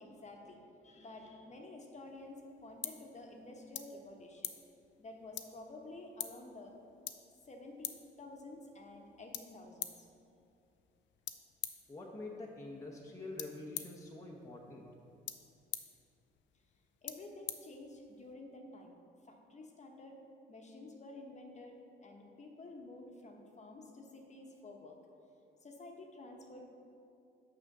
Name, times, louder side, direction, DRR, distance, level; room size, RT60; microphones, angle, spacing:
voice 1, 0.0-4.5 5.0-6.7 7.4-10.1 17.0-18.9 19.2-20.2 20.5-25.0 25.6-26.7, left 2 dB, 35° left, 2 dB, 1.1 m, -51 dB
sound 1, 2.1-18.3, left 10 dB, 65° left, 0.5 m, -48 dB
voice 2, 11.9-14.8, left 2 dB, 15° left, -1 dB, 0.9 m, -46 dB
6.3 x 4.9 x 6.7 m, 2.6 s
cardioid pair, 90°, 20 cm